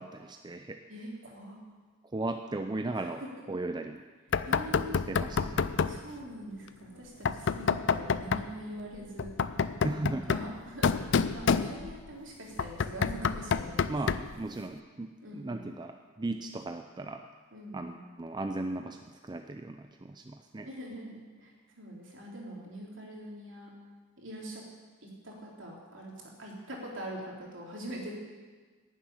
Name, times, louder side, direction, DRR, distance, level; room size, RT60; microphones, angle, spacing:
voice 1, 0.0-0.8 2.1-3.2 3.5-4.0 5.1-5.7 9.8-10.3 13.9-17.3 17.7-20.7, right 2 dB, 20° right, 6 dB, 0.4 m, -36 dB
voice 2, 0.9-1.6 3.0-3.1 4.5-5.1 5.8-9.3 10.0-13.9 15.2-15.7 17.5-18.0 20.6-23.7 24.2-24.6 25.0-26.1 26.4-28.1, right 1 dB, 65° right, -3 dB, 3.3 m, -43 dB
Knock, 4.3-6.0 7.3-8.5 9.2-12.1 12.6-14.4, left 5 dB, 60° left, 0.4 m, -29 dB
11.0 x 7.4 x 9.5 m, 1.4 s
head